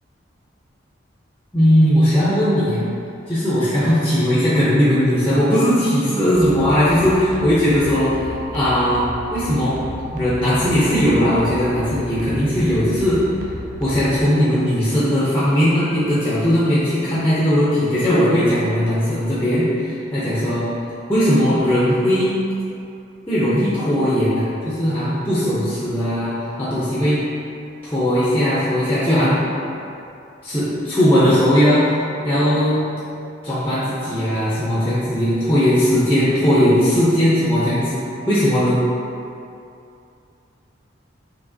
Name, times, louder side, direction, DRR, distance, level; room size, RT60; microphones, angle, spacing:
voice 1, 1.5-2.8 3.3-8.1 8.5-9.0 9.3-9.8 10.1-13.2 13.8-20.7 21.1-22.4 23.3-27.2 27.8-29.4 30.4-31.9 32.2-32.8 33.4-38.8, equal, 10° left, -11 dB, 0.6 m, -18 dB
sound 1, 6.3-14.2, equal, 40° right, 0.4 m, -33 dB
5.0 x 2.9 x 2.7 m, 2.6 s
head